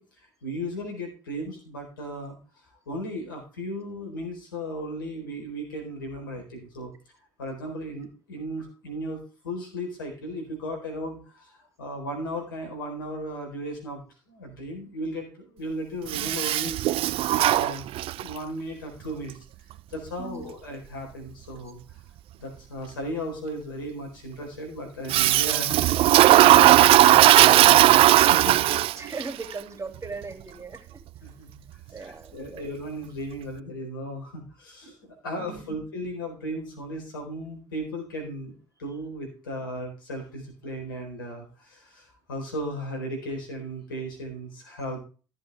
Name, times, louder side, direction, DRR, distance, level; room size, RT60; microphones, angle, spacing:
voice 1, 0.0-2.4 2.9-6.9 7.4-16.8 17.3-17.8 18.1-19.4 19.9-22.0 22.4-28.6 31.2-38.5 38.8-45.0, equal, 90° left, 2 dB, 4.2 m, -36 dB
Toilet flush, 16.1-18.3 25.1-29.2, right 14 dB, 60° right, 0.4 m, -17 dB
voice 2, 27.0-31.0 31.9-32.6 35.4-35.8, right 3 dB, 30° right, 6 dB, 2.8 m, -39 dB
14.5 x 7.7 x 3.4 m, 0.36 s
hypercardioid pair, 55°, 11 cm